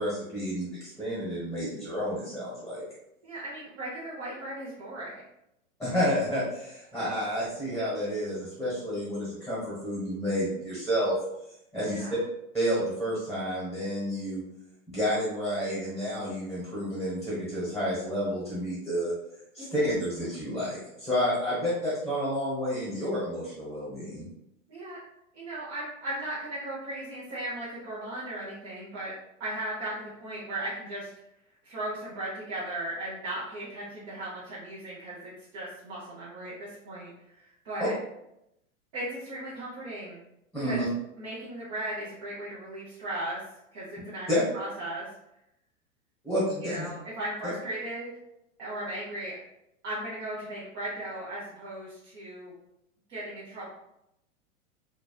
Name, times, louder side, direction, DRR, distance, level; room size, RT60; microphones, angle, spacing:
voice 1, 0.0-2.8 5.8-11.2 11.7-12.0 12.5-14.4 14.9-19.1 19.5-24.3 37.8-37.9 40.5-40.8 44.3-44.4 46.2-46.9, equal, ahead, -8 dB, 1.1 m, -30 dB
voice 2, 3.2-5.2 11.9-12.1 19.6-19.7 24.7-25.0 25.3-29.1 29.4-31.1 31.6-38.0 38.9-40.2 40.6-40.8 41.2-43.4 43.7-44.3 44.5-45.1 46.6-48.1 48.6-49.4 49.8-52.5 53.1-53.7, right 1 dB, 40° right, -9 dB, 1.1 m, -37 dB
3.2 x 2.3 x 2.4 m, 0.83 s
figure-of-eight pair, 105°, 43 cm